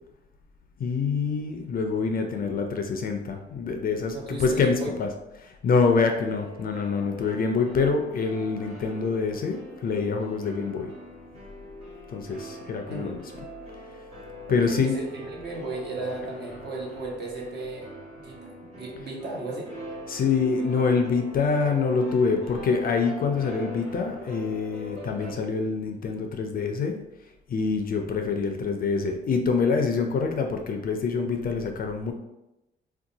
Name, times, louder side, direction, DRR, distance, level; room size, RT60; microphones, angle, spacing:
voice 1, 0.8-10.9 12.1-13.5 14.5-15.0 20.1-27.0 27.5-32.1, left 4 dB, 45° left, 4 dB, 0.4 m, -26 dB
voice 2, 4.1-4.9 12.9-13.2 14.5-17.9 18.2-19.7, right 2 dB, 55° right, -3 dB, 1.1 m, -35 dB
sound 1, 6.2-25.3, left 1 dB, 30° right, 1.4 m, -42 dB
2.7 x 2.2 x 3.9 m, 0.93 s
cardioid pair, 90°, 20 cm